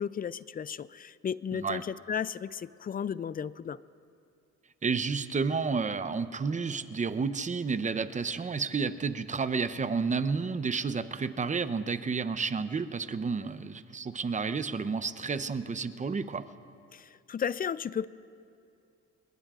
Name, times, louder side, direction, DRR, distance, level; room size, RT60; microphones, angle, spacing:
voice 1, 0.0-3.8 16.9-18.1, left 7 dB, 30° left, 18 dB, 0.4 m, -34 dB
voice 2, 1.5-1.8 4.8-16.4, right 5 dB, 25° right, 12 dB, 0.7 m, -31 dB
27.5 x 20.5 x 2.5 m, 2.5 s
cardioid pair, 90°, 30 cm